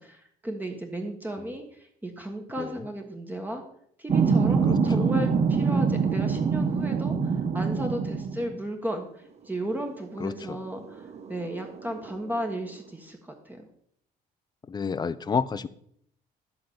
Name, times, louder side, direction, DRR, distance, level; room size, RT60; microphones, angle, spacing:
voice 1, 0.0-3.6 4.0-13.7, right 1 dB, 10° right, 3 dB, 1.4 m, -34 dB
sound 1, 4.1-8.6 9.9-10.0 10.4-12.4, right 5 dB, 40° right, 1.0 m, -25 dB
voice 2, 4.7-5.0 10.2-10.6 14.7-15.7, left 5 dB, 25° left, 15 dB, 0.6 m, -30 dB
11.5 x 4.0 x 7.8 m, 0.67 s
cardioid pair, 110°, 17 cm